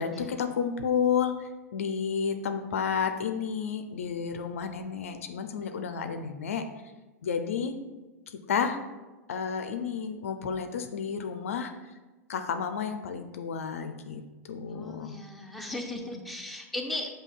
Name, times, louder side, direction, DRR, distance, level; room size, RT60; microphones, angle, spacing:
voice 1, 0.0-6.6 7.2-7.8 8.3-8.8 9.3-11.7 12.3-14.2 14.5-15.1 16.0-16.2, left 6 dB, 65° left, 7 dB, 0.4 m, -31 dB
voice 2, 14.7-17.1, left 1 dB, ahead, 0 dB, 0.5 m, -37 dB
7.2 x 2.7 x 2.3 m, 1.2 s
figure-of-eight pair, 95°, 8 cm